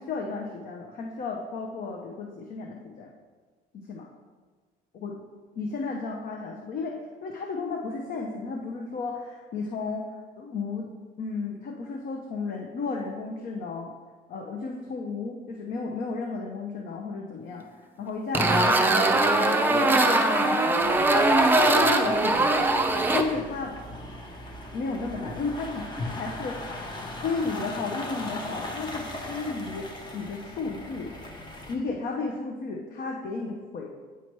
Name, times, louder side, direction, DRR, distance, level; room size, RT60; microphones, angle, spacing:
voice 1, 0.0-3.1 3.9-4.1 4.9-5.2 5.6-7.0 7.2-10.1 10.4-10.9 11.2-13.9 14.3-17.6 18.0-21.3 21.6-22.7 23.1-23.7 24.7-26.6 27.2-29.9 30.1-31.1 31.7-33.9, left 4 dB, 55° left, 1 dB, 0.7 m, -33 dB
sound 1, 18.3-23.2, right 2 dB, 10° right, 0.5 m, -21 dB
sound 2, 20.8-31.8, left 1 dB, 25° left, 0.8 m, -38 dB
8.3 x 3.0 x 4.5 m, 1.4 s
cardioid pair, 110°, 17 cm